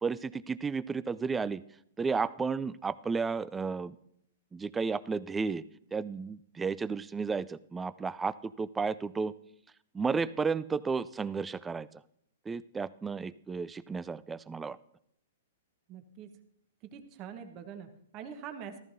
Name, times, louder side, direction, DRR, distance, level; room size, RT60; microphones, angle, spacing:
voice 1, 0.0-1.6 2.0-4.0 4.5-5.6 5.9-9.3 9.9-11.9 12.5-14.8, right 5 dB, 10° right, 17 dB, 0.3 m, -33 dB
voice 2, 15.9-16.3 16.8-18.8, right 8 dB, 35° right, 7 dB, 1.1 m, -44 dB
14.5 x 14.0 x 2.7 m, 0.71 s
hypercardioid pair, 135°, 0 cm